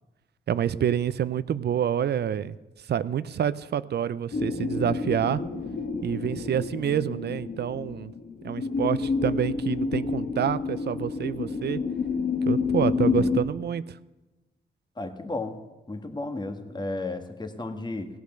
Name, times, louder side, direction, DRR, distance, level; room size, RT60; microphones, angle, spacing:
voice 1, 0.5-2.6 2.9-5.4 6.0-8.1 8.4-11.8 12.5-14.0, right 9 dB, 65° right, 16 dB, 0.6 m, -27 dB
sound 1, 4.3-13.4, left 5 dB, 60° left, 1.7 m, -29 dB
voice 2, 13.0-13.3 15.0-15.6 15.9-18.1, left 2 dB, 25° left, 6 dB, 1.5 m, -33 dB
17.0 x 8.3 x 6.6 m, 1.1 s
cardioid pair, 60°, 19 cm